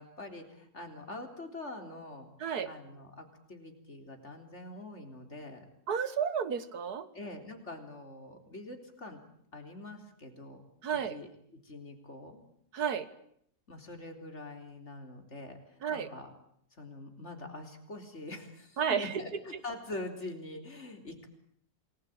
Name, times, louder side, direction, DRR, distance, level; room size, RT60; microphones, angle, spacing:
voice 1, 0.0-2.3 2.7-5.7 7.1-9.2 9.5-10.6 11.1-11.3 11.6-12.4 13.7-16.3 16.8-21.3, left 2 dB, 45° left, 5 dB, 4.1 m, -44 dB
voice 2, 2.4-2.7 5.9-7.1 10.8-11.2 12.7-13.1 15.8-16.1 18.8-19.4, right 7 dB, 75° right, 13 dB, 2.0 m, -32 dB
28.0 x 20.5 x 9.0 m, 0.69 s
omnidirectional pair, 1.7 m